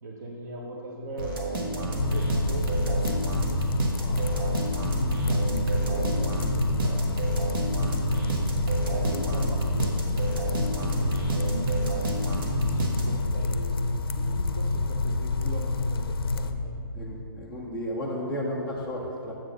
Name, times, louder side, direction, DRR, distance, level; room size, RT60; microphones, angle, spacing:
voice 1, 0.0-3.2 5.0-7.2 8.9-11.3 12.5-16.7, right 1 dB, 45° right, -2 dB, 0.8 m, -40 dB
sound 1, 1.2-13.4, right 2 dB, 65° right, 1.3 m, -29 dB
sound 2, 2.0-16.5, left 3 dB, 70° left, 0.5 m, -28 dB
voice 2, 3.8-4.7 16.9-19.3, equal, ahead, -10 dB, 0.3 m, -34 dB
7.4 x 4.0 x 6.1 m, 2.5 s
hypercardioid pair, 160°, 12 cm